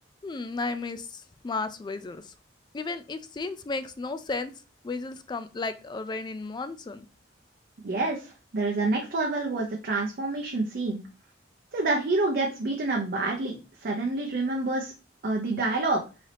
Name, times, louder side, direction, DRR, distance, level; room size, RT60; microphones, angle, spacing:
voice 1, 0.2-2.2 2.7-4.5 4.8-7.1, left 3 dB, 25° left, 0.3 m, -34 dB
voice 2, 7.8-11.0 11.7-13.5 13.8-14.9 15.2-16.0, right 2 dB, 55° right, 0.6 m, -27 dB
3.9 x 2.7 x 3.3 m
head